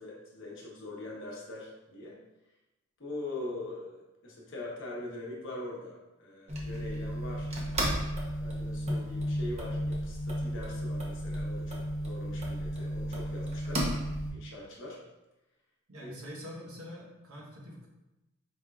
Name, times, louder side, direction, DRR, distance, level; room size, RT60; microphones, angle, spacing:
voice 1, 0.0-2.2 3.0-7.5 8.3-13.9 14.3-15.0 16.0-16.1, left 2 dB, 60° left, -2 dB, 1.0 m, -42 dB
sound 1, 6.5-14.3, equal, 30° right, 0.7 m, -34 dB
sound 2, 8.9-12.9, left 1 dB, ahead, 0.5 m, -39 dB
voice 2, 15.9-17.9, equal, 75° right, -2 dB, 1.0 m, -45 dB
4.9 x 3.5 x 2.3 m, 0.98 s
head